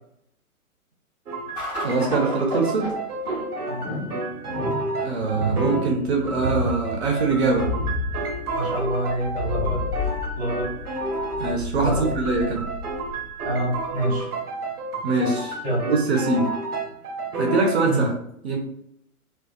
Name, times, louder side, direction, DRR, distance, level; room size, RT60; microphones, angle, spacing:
sound 1, 1.3-6.0 6.3-11.6 11.9-17.9, right 2 dB, 80° right, 0.7 m, -31 dB
sound 2, 1.5-14.2, left 1 dB, 15° left, 0.9 m, -32 dB
voice 1, 1.8-2.9 5.0-7.7 11.4-12.6 15.0-15.6 15.9-16.5 17.3-18.1 18.4-18.6, right 3 dB, 50° right, 1 dB, 0.6 m, -23 dB
voice 2, 8.5-9.8 10.3-10.7 11.8-12.1 13.4-14.3 15.6-15.9 17.8-18.0, right 1 dB, 5° right, -20 dB, 0.4 m, -26 dB
2.5 x 2.2 x 2.3 m, 0.73 s
figure-of-eight pair, 120°, 44 cm